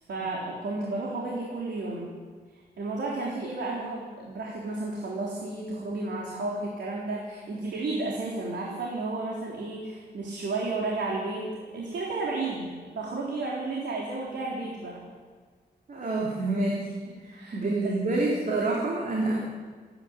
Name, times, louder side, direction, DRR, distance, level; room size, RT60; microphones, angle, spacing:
voice 1, 0.1-2.1 2.8-15.0 17.3-18.0, right 2 dB, 85° right, -3 dB, 3.8 m, -32 dB
voice 2, 15.9-16.9 17.2-19.5, right 2 dB, 50° right, -3 dB, 3.4 m, -28 dB
27.0 x 11.0 x 9.6 m, 1.5 s
wide cardioid pair, 165°, 18 cm